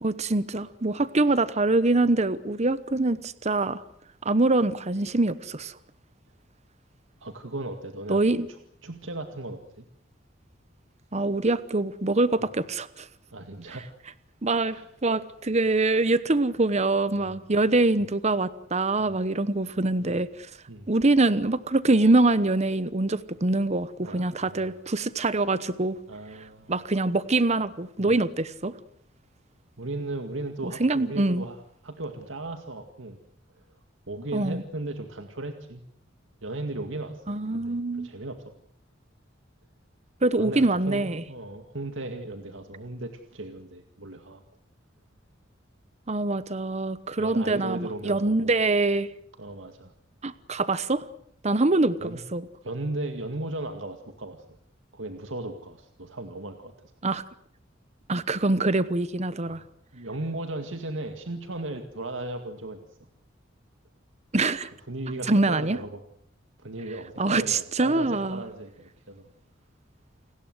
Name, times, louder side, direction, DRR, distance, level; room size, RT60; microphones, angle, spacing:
voice 1, 0.0-3.8 4.2-5.7 8.1-8.5 11.1-13.1 14.4-14.8 15.0-20.5 20.9-26.0 26.7-28.7 30.6-31.4 34.3-34.6 37.3-38.1 40.2-41.2 46.1-49.1 50.2-51.0 51.4-52.4 57.0-57.2 58.1-59.6 64.3-64.7 65.3-65.8 67.2-68.4, right 2 dB, 35° right, 15 dB, 1.0 m, -24 dB
voice 2, 7.2-9.9 13.3-13.9 14.7-14.9 17.1-17.4 19.0-19.1 20.0-20.2 20.7-20.9 24.0-24.8 26.1-26.8 28.0-28.1 29.8-33.2 33.6-33.7 34.1-35.8 36.4-38.5 40.3-44.4 47.2-48.6 49.4-49.9 52.0-52.2 52.6-54.4 54.9-56.7 59.5-59.6 59.9-63.0 64.9-66.0 66.6-69.3, right 2 dB, 80° right, 6 dB, 2.1 m, -36 dB
29.5 x 20.0 x 8.0 m, 0.68 s
head